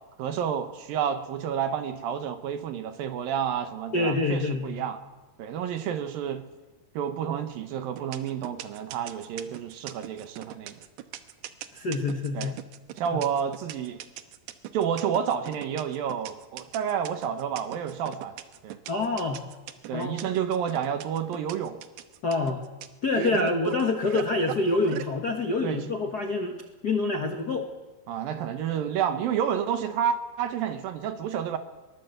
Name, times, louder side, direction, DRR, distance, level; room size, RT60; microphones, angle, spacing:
voice 1, 0.2-5.0 5.4-6.4 6.9-10.8 12.3-12.5 13.0-14.0 14.7-18.3 18.6-18.8 19.9-21.8 23.2-23.5 25.6-25.9 28.1-31.6, right 8 dB, 70° right, 9 dB, 2.7 m, -30 dB
voice 2, 3.9-4.8 11.7-12.6 13.1-13.2 18.9-19.4 19.9-20.2 22.2-22.6 23.0-26.6 26.8-27.7, left 3 dB, 80° left, 4 dB, 0.8 m, -26 dB
sound 1, 8.0-25.1, right 12 dB, 90° right, 3.1 m, -38 dB
22.5 x 19.0 x 8.0 m, 1.2 s
omnidirectional pair, 4.6 m